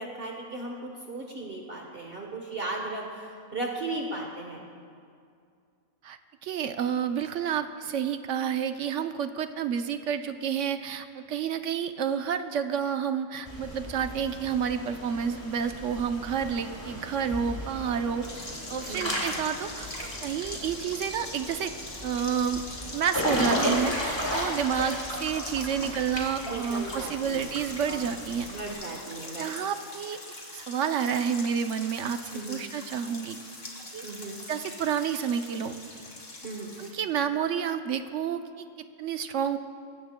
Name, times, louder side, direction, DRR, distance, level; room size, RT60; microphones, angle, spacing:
voice 1, 0.0-4.7 18.9-19.2 26.4-27.5 27.9-28.0 28.5-29.6 32.3-32.6 34.0-34.5 36.4-36.7, right 2 dB, 45° right, 0 dB, 1.3 m, -36 dB
voice 2, 6.0-18.2 18.7-19.9 20.2-21.7 22.0-22.6 22.9-28.5 29.4-30.2 30.5-32.2 32.5-33.4 33.9-34.1 34.5-35.8 36.8-39.6, right 7 dB, 65° right, 9 dB, 0.9 m, -30 dB
Water / Splash splatter / Drip, 13.5-28.7, left 1 dB, 20° left, 2.2 m, -35 dB
sound 1, 18.2-36.9, left 1 dB, 45° left, 2.5 m, -43 dB
21.5 x 16.0 x 2.2 m, 2.3 s
omnidirectional pair, 1.4 m